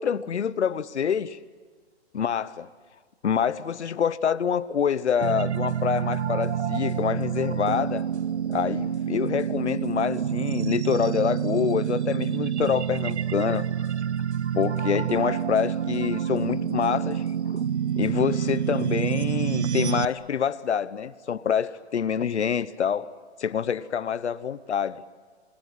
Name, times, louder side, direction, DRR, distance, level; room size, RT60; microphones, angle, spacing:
voice 1, 0.0-1.4 2.1-2.7 3.2-8.1 8.5-13.7 14.5-17.2 18.0-23.1 23.4-25.0, left 8 dB, 90° left, 1.1 m, -26 dB
sound 1, 5.2-20.0, right 9 dB, 90° right, 0.8 m, -27 dB
28.0 x 22.0 x 9.2 m
hypercardioid pair, 145°, 33 cm